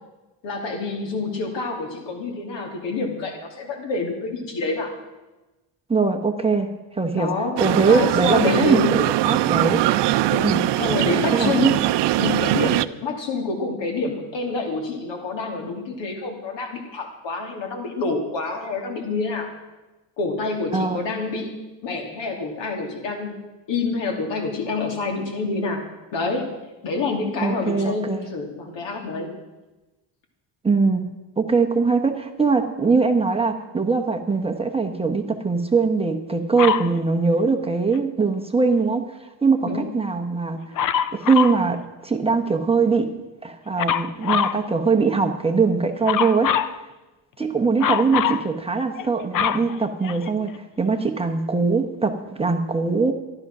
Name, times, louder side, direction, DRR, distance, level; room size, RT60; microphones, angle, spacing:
voice 1, 0.4-4.9 7.1-9.0 10.3-11.8 12.2-19.5 20.2-23.4 23.7-25.8 26.1-26.5 26.8-29.3 39.6-39.9, left 3 dB, 70° left, 3 dB, 2.9 m, -27 dB
voice 2, 5.9-7.3 7.6-9.9 10.4-10.6 11.3-11.8 20.7-21.0 27.4-28.2 30.6-31.1 31.4-39.0 39.4-40.6 41.1-43.1 43.4-46.8 47.4-53.1, right 4 dB, 15° right, 3 dB, 1.0 m, -21 dB
sound 1, 7.6-12.9, right 15 dB, 65° right, 0.6 m, -21 dB
Dog, 36.6-36.9 40.8-41.6 43.8-44.6 46.0-46.8 47.8-48.4 49.0-50.5 51.2-51.3, left 9 dB, 45° left, 0.7 m, -23 dB
14.0 x 12.0 x 6.1 m, 1.1 s
cardioid pair, 140°, 45 cm